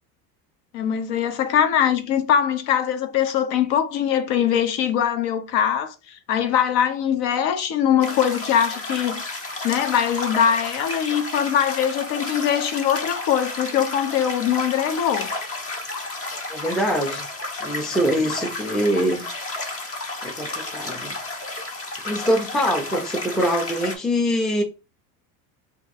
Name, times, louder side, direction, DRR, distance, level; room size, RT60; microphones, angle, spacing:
voice 1, 0.7-9.2 9.6-15.3, left 9 dB, 60° left, 0.7 m, -22 dB
sound 1, 8.0-24.0, left 2 dB, 30° left, 0.8 m, -32 dB
voice 2, 16.5-17.3 17.6-19.3 20.2-21.2 22.0-24.6, equal, ahead, 0.4 m, -23 dB
2.7 x 2.2 x 4.0 m
supercardioid pair, 100°, 47 cm